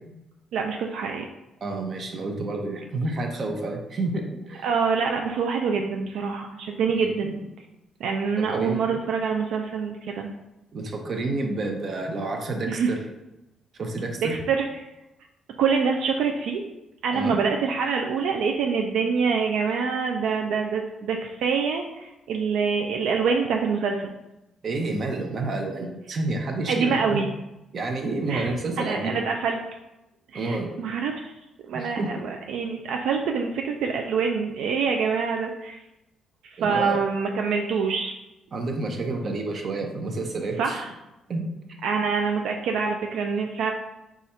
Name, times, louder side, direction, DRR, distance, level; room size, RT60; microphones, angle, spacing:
voice 1, 0.5-1.3 4.6-7.4 8.0-10.3 12.7-12.9 14.2-14.7 15.6-16.6 17.0-24.1 26.7-27.3 28.3-29.6 30.3-31.3 31.7-35.8 36.4-38.1 40.6-40.9 41.8-43.7, right 5 dB, 80° right, 3 dB, 0.3 m, -25 dB
voice 2, 1.6-4.7 6.9-7.3 8.4-8.9 10.7-13.0 13.7-14.4 17.1-17.4 24.6-27.2 27.7-29.2 30.3-30.7 31.7-32.3 36.6-37.0 38.5-40.8 41.3-41.5, right 2 dB, 50° right, 3 dB, 0.7 m, -29 dB
4.0 x 2.4 x 4.3 m, 0.96 s
cardioid pair, 90°, 0 cm